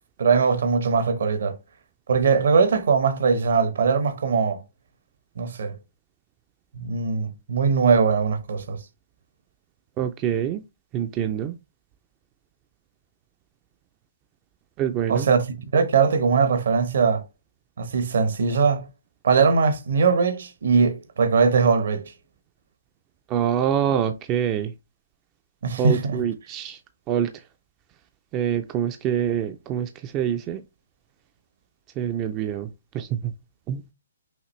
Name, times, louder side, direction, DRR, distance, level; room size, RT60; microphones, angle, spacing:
voice 1, 0.2-1.6 2.1-4.6 5.4-5.7 6.7-8.8 15.1-15.4 15.7-17.2 17.8-18.9 19.2-22.1 25.6-26.2, right 5 dB, 65° right, 1.0 m, -21 dB
voice 2, 10.0-10.6 10.9-11.5 14.8-15.3 23.3-24.7 25.8-26.8 27.1-27.4 28.3-30.6 32.0-33.3 33.7-33.8, right 9 dB, 20° right, 0.3 m, -25 dB
5.7 x 2.9 x 3.1 m
hypercardioid pair, 170°, 0 cm